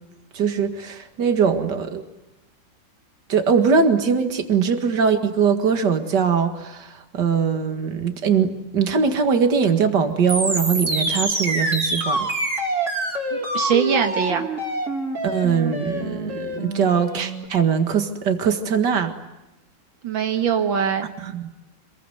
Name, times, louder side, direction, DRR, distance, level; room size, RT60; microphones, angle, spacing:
voice 1, 0.3-2.0 3.3-12.3 15.2-19.2 21.2-21.5, right 6 dB, 60° right, 7 dB, 2.5 m, -21 dB
sound 1, 10.3-17.5, right 2 dB, 40° right, 4.1 m, -26 dB
voice 2, 13.3-14.5 20.0-21.1, right 7 dB, 90° right, 6 dB, 2.3 m, -22 dB
26.5 x 21.5 x 9.3 m, 0.99 s
omnidirectional pair, 2.0 m